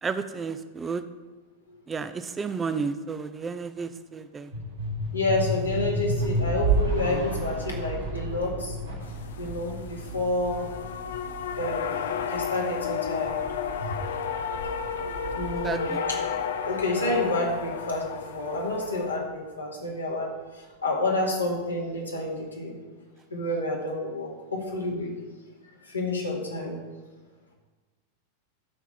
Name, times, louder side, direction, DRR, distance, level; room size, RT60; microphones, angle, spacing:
voice 1, 0.0-1.0 1.9-4.5 15.6-16.0, right 5 dB, 15° right, 11 dB, 0.6 m, -32 dB
sound 1, 4.5-17.0, right 1 dB, 75° right, 3.3 m, -32 dB
voice 2, 5.1-8.8 9.4-10.7 11.6-13.5 14.9-16.0 16.6-20.3 20.8-22.8 23.3-25.2 25.9-26.8, left 2 dB, 80° left, -2 dB, 2.3 m, -29 dB
sound 2, 9.0-19.2, left 7 dB, 60° left, 0.7 m, -32 dB
12.0 x 4.7 x 5.8 m, 1.3 s
figure-of-eight pair, 90°, 0 cm